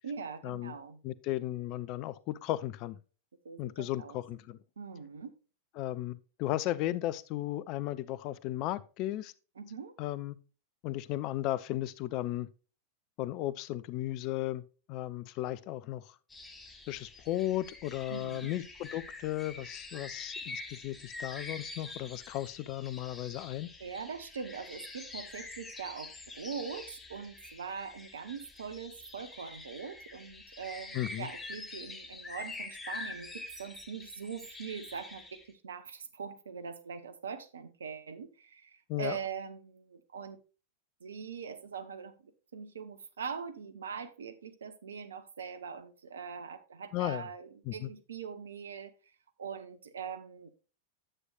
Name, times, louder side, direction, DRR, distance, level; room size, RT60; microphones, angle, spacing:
voice 1, 0.0-1.0 3.4-4.2 4.8-5.3 9.6-9.9 18.1-18.5 23.8-40.4 41.0-48.9 49.4-50.5, right 6 dB, 70° right, 0.9 m, -42 dB
voice 2, 1.0-3.0 3.6-4.6 5.8-9.3 10.0-10.4 10.8-12.5 13.2-14.6 14.9-16.0 16.9-23.7 30.9-31.3 38.9-39.2 46.9-47.3 47.7-47.9, left 15 dB, 40° left, 0.5 m, -35 dB
sound 1, 16.3-35.5, left 3 dB, 15° left, 1.5 m, -46 dB
9.9 x 7.9 x 2.5 m
figure-of-eight pair, 90°, 0 cm